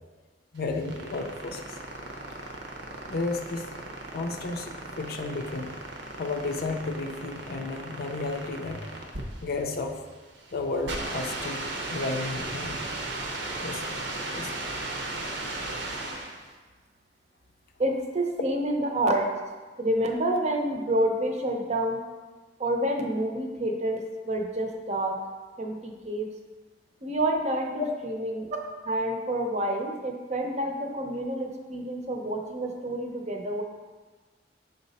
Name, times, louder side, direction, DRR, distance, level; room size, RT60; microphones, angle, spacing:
voice 1, 0.5-1.7 3.1-3.7 4.1-5.7 6.2-8.9 9.4-10.0 10.5-12.8 13.6-14.5 27.8-27.9, left 3 dB, 55° left, 3 dB, 0.5 m, -33 dB
sound 1, 0.6-16.5, right 2 dB, 85° right, 0.9 m, -36 dB
voice 2, 17.8-19.3 19.8-22.0 22.6-25.2 25.6-26.3 27.0-33.6, right 1 dB, 40° right, 3 dB, 0.7 m, -28 dB
6.4 x 4.0 x 4.1 m, 1.3 s
head